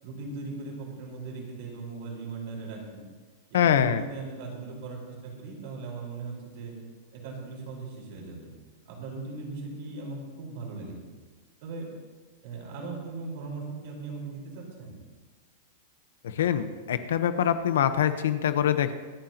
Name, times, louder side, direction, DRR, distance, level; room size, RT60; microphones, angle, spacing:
voice 1, 0.0-3.0 3.5-6.7 7.1-8.5 8.9-10.9 11.6-11.9 12.4-14.9, right 3 dB, 50° right, -2 dB, 4.6 m, -38 dB
voice 2, 3.5-4.0 16.2-18.9, left 9 dB, 85° left, 10 dB, 1.0 m, -24 dB
26.0 x 9.1 x 3.0 m, 1.4 s
supercardioid pair, 170°, 0 cm